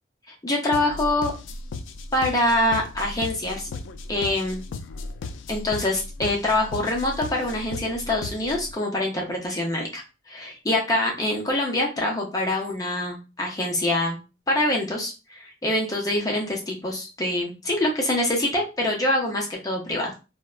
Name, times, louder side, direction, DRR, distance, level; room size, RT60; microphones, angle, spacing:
voice 1, 0.4-1.3 2.1-3.7 4.1-4.6 5.5-14.2 14.5-20.1, left 1 dB, 20° left, 0 dB, 0.6 m, -25 dB
sound 1, 0.7-8.7, left 3 dB, 85° left, 0.3 m, -36 dB
3.2 x 2.1 x 2.3 m, 0.29 s
head